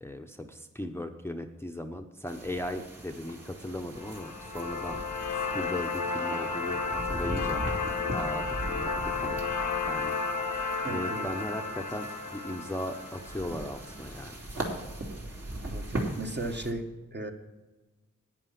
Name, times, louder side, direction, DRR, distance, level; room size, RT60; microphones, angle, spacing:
voice 1, 0.0-5.0 5.3-7.6 8.1-9.4 9.9-10.2 10.9-14.4, left 1 dB, 10° left, 5 dB, 0.9 m, -37 dB
sound 1, 2.3-16.7, right 1 dB, 55° right, 2.8 m, -39 dB
sound 2, 4.0-14.0, left 4 dB, 90° left, 1.1 m, -33 dB
voice 2, 10.8-11.3 15.6-16.8 17.1-17.3, right 2 dB, 35° right, 3 dB, 1.5 m, -35 dB
11.0 x 9.2 x 5.9 m, 1.2 s
cardioid pair, 60°, 30 cm